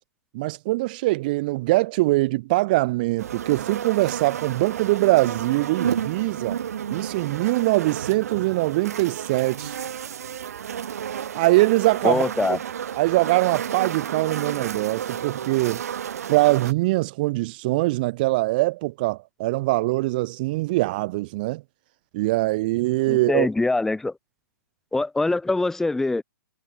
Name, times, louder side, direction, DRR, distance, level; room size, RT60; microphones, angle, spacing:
voice 1, 0.3-6.6 6.9-9.7 11.3-12.2 12.5-12.6 13.0-15.8 16.3-21.6 22.1-23.5, right 20 dB, 30° right, 0.5 m, -22 dB
sound 1, 3.2-16.7, right 9 dB, 50° right, 4.8 m, -31 dB
voice 2, 12.0-12.6 23.1-24.1 24.9-26.2, left 2 dB, 5° left, 1.3 m, -23 dB
figure-of-eight pair, 125°, 10 cm